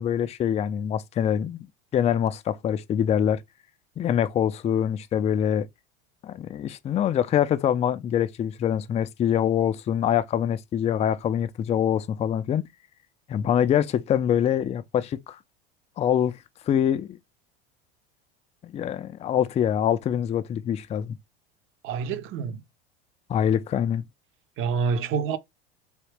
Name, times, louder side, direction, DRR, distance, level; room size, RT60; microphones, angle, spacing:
voice 1, 0.0-1.7 1.9-3.4 4.0-5.7 6.2-12.7 13.3-15.4 16.0-16.3 16.7-17.1 18.6-21.1 23.3-24.0, left 9 dB, 25° left, 0.4 m, -24 dB
voice 2, 21.8-22.6 24.6-25.4, right 5 dB, 45° right, 0.7 m, -27 dB
3.5 x 2.8 x 3.2 m
hypercardioid pair, 90°, 29 cm